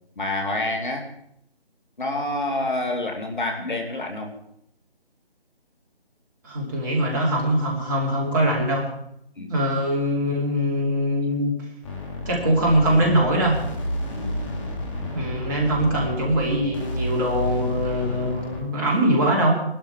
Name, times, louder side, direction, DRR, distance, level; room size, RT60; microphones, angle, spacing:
voice 1, 0.2-1.1 2.0-4.3 9.4-9.6 14.1-14.4, left 2 dB, 50° left, 3 dB, 2.5 m, -28 dB
voice 2, 6.4-8.9 9.5-11.6 12.3-13.6 15.1-19.5, right 1 dB, 20° right, -2 dB, 2.8 m, -22 dB
sound 1, 11.8-18.6, left 1 dB, 30° left, 3.2 m, -31 dB
19.5 x 12.5 x 4.8 m, 0.74 s
figure-of-eight pair, 160°, 31 cm